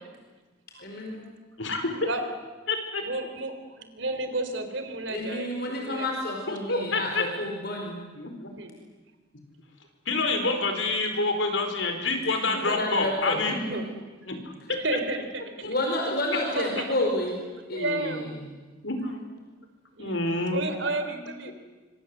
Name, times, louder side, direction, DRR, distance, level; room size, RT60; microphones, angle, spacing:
voice 1, 0.8-1.3 5.1-8.0 12.4-13.8 15.6-17.4 17.7-18.2, left 1 dB, 55° left, 1 dB, 4.9 m, -30 dB
voice 2, 1.6-1.9 2.7-3.0 6.5-7.2 8.2-8.5 10.1-13.6 14.3-14.4 14.7-14.8 18.8-19.2 20.0-20.7, left 3 dB, 70° left, 6 dB, 4.6 m, -27 dB
voice 3, 3.0-6.1 6.7-6.9 8.6-8.7 11.4-11.5 13.5-13.9 14.7-15.7 16.6-17.0 17.7-18.4 19.9-20.2 20.5-21.5, right 2 dB, 65° right, 8 dB, 3.6 m, -32 dB
26.0 x 25.0 x 8.0 m, 1.3 s
head